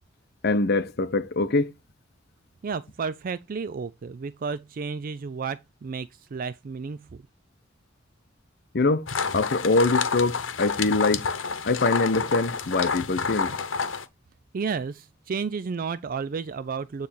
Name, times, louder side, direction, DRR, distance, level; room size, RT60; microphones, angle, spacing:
voice 1, 0.4-1.7 8.7-9.1 9.3-11.2 11.6-13.5, left 3 dB, 55° left, 0.7 m, -23 dB
voice 2, 2.6-7.2 14.5-17.1, right 5 dB, 45° right, 0.4 m, -32 dB
sound 1, 9.1-14.1, left 5 dB, 85° left, 0.9 m, -29 dB
9.2 x 3.3 x 4.2 m
head